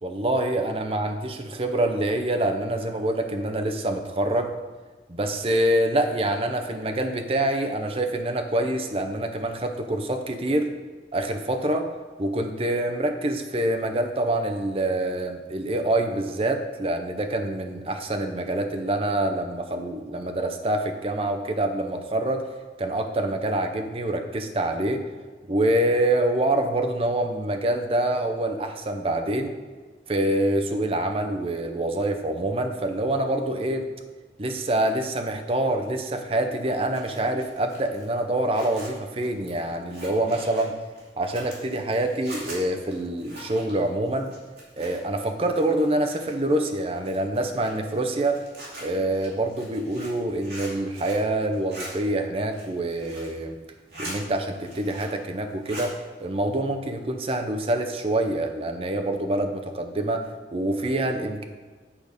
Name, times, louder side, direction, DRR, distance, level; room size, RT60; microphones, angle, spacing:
voice 1, 0.0-4.5 5.1-10.7 11.1-11.9 12.2-22.4 22.8-25.0 25.5-29.5 30.1-33.8 34.4-40.8 41.2-44.3 44.8-48.4 48.8-53.6 54.0-61.4, right 1 dB, 30° right, 5 dB, 0.6 m, -26 dB
Zipper (clothing), 36.7-45.3 45.5-46.5 47.0-51.3 51.5-51.9 52.4-53.4 53.7-54.2 54.5-55.2 55.5-55.9, right 1 dB, 70° right, 2.4 m, -42 dB
8.4 x 4.0 x 5.0 m, 1.3 s
head